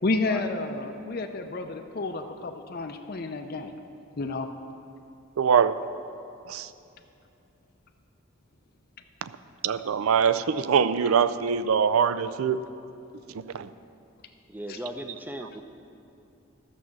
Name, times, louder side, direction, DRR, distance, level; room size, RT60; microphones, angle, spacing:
voice 1, 0.0-3.8 4.2-4.5 14.7-14.8, left 3 dB, 45° left, 6 dB, 0.5 m, -30 dB
voice 2, 5.4-5.8 6.5-6.7 9.6-12.6 13.5-13.7, right 7 dB, 90° right, 14 dB, 0.4 m, -23 dB
voice 3, 14.5-15.6, right 1 dB, 10° right, 6 dB, 0.5 m, -38 dB
11.5 x 6.3 x 7.2 m, 2.7 s
head